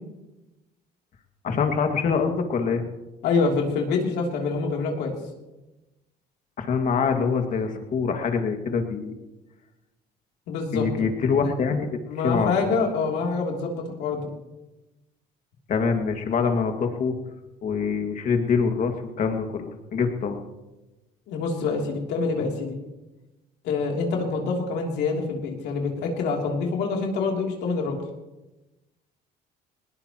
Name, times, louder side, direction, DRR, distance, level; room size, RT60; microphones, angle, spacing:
voice 1, 1.4-2.8 6.6-9.1 10.7-12.0 12.2-12.7 15.7-17.1 17.6-20.4, left 5 dB, 50° left, 4 dB, 2.1 m, -25 dB
voice 2, 3.2-5.1 10.5-11.1 11.4-11.6 12.1-14.3 21.3-22.8 23.6-28.0, left 4 dB, 85° left, 0 dB, 3.2 m, -26 dB
20.0 x 20.0 x 3.1 m, 1.0 s
cardioid pair, 110°, 17 cm